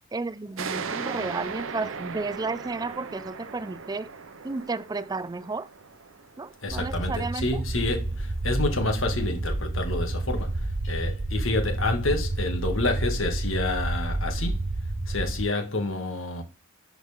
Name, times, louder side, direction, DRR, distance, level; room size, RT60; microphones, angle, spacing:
voice 1, 0.1-4.1 4.4-5.7 6.4-7.5, right 3 dB, 20° right, 0.4 m, -32 dB
sound 1, 0.6-7.7, right 5 dB, 75° right, 0.8 m, -38 dB
voice 2, 6.6-14.6 15.1-16.4, left 2 dB, 70° left, 2.1 m, -29 dB
sound 2, 6.7-15.5, right 2 dB, 35° right, 0.8 m, -29 dB
11.5 x 4.6 x 3.7 m
head